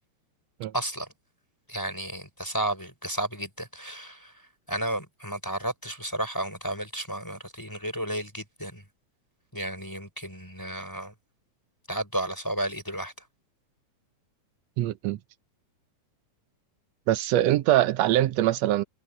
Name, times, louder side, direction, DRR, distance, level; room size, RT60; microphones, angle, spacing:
voice 1, 0.7-1.1 1.7-8.8 9.5-11.1 11.9-13.1, right 1 dB, 5° left, 4.5 m, -33 dB
voice 2, 14.8-15.2 17.1-18.8, right 13 dB, 70° right, 1.8 m, -23 dB
omnidirectional pair, 3.4 m